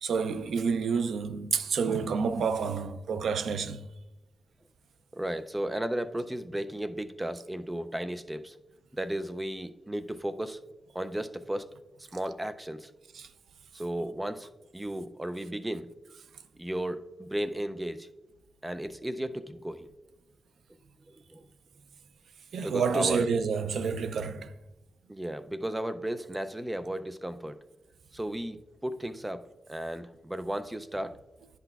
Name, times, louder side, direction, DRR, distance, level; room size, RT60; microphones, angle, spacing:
voice 1, 0.0-3.9 13.1-13.3 22.5-24.5, right 5 dB, 85° right, 0.4 m, -29 dB
voice 2, 5.1-8.6 8.9-10.6 10.9-11.7 12.0-12.9 13.7-15.9 16.6-18.1 18.6-19.9 21.1-21.5 22.6-23.3 25.1-27.6 28.1-31.2, right 1 dB, 10° right, 0.3 m, -34 dB
9.8 x 5.9 x 2.3 m
wide cardioid pair, 165°, 0 cm